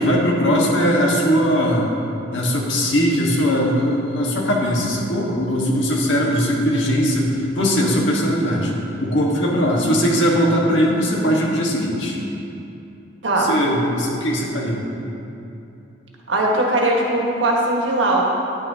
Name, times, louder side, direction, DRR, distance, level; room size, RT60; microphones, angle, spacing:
voice 1, 0.0-1.9 2.3-12.2 13.4-14.9, equal, 85° left, -2 dB, 1.5 m, -20 dB
voice 2, 16.3-18.4, right 1 dB, 90° right, -2 dB, 1.5 m, -19 dB
10.0 x 9.6 x 2.8 m, 2.8 s
head